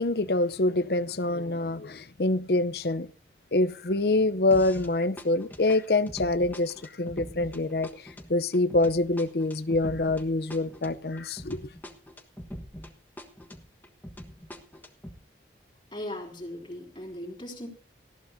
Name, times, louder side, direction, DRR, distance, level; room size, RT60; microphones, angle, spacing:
voice 1, 0.0-3.1 3.5-7.9 8.3-11.6, left 2 dB, 60° left, 0.7 m, -25 dB
sound 1, 4.5-4.9 5.2-12.9 13.2-15.2, equal, 10° left, 1.3 m, -43 dB
voice 2, 15.9-17.7, left 1 dB, 25° left, 3.4 m, -38 dB
19.0 x 15.0 x 2.7 m
head